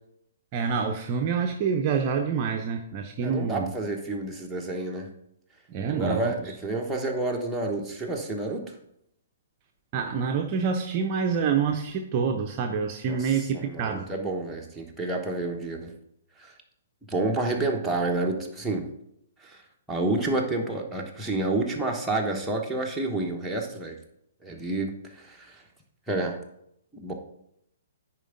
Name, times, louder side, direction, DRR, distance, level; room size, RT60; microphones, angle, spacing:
voice 1, 0.5-3.7 5.7-6.4 9.9-14.1, right 6 dB, 35° right, 3 dB, 0.6 m, -27 dB
voice 2, 3.2-5.1 5.9-8.7 13.1-15.9 16.4-16.5 17.1-18.9 19.4-19.6 19.9-24.0 24.4-25.6 26.1-26.4 27.0-27.1, right 2 dB, 5° right, -2 dB, 1.1 m, -29 dB
9.9 x 4.5 x 3.8 m, 0.75 s
figure-of-eight pair, 120°, 0 cm